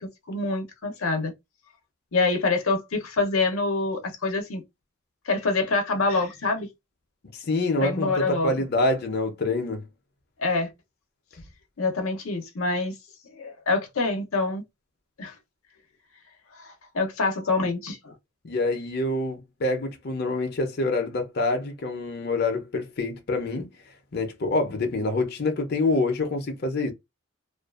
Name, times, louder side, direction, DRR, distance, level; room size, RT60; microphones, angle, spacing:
voice 1, 0.0-1.3 2.1-4.6 5.3-6.7 7.8-8.7 10.4-10.7 11.8-12.9 13.3-14.6 15.2-15.3 16.5-18.1, left 3 dB, 90° left, 0.7 m, -26 dB
voice 2, 7.3-9.8 18.4-23.7 24.1-26.9, left 2 dB, 50° left, 0.6 m, -26 dB
2.5 x 2.3 x 2.3 m
head